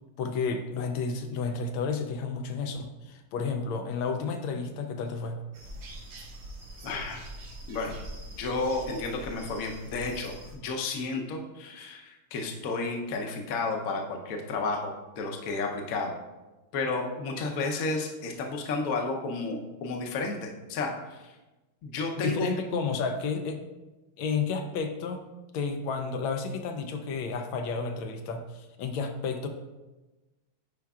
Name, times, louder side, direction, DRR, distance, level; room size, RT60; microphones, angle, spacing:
voice 1, 0.2-5.4 22.2-23.6 24.2-25.2 25.5-29.5, left 5 dB, 80° left, 5 dB, 1.4 m, -31 dB
sound 1, 5.5-10.6, right 1 dB, 90° right, 1.9 m, -43 dB
voice 2, 6.8-7.3 7.7-7.9 8.3-16.1 16.7-21.3 21.8-22.5, left 3 dB, 60° left, 2 dB, 1.0 m, -32 dB
10.0 x 4.5 x 2.3 m, 1.1 s
omnidirectional pair, 2.2 m